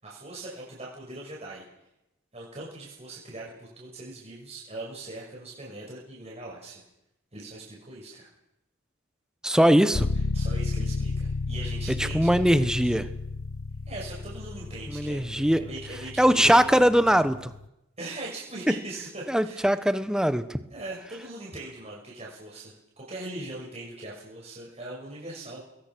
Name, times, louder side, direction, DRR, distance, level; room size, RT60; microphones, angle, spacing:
voice 1, 0.0-1.6 2.3-6.8 7.3-8.3 10.3-12.3 13.9-16.7 18.0-19.7 20.7-25.6, right 2 dB, 30° right, -4 dB, 6.3 m, -40 dB
voice 2, 9.4-10.1 12.0-13.1 14.9-15.6 16.2-17.5 19.3-20.4, equal, 5° right, 11 dB, 1.1 m, -21 dB
sound 1, 9.9-17.7, left 3 dB, 90° left, 0.9 m, -32 dB
27.0 x 21.0 x 6.3 m, 0.86 s
head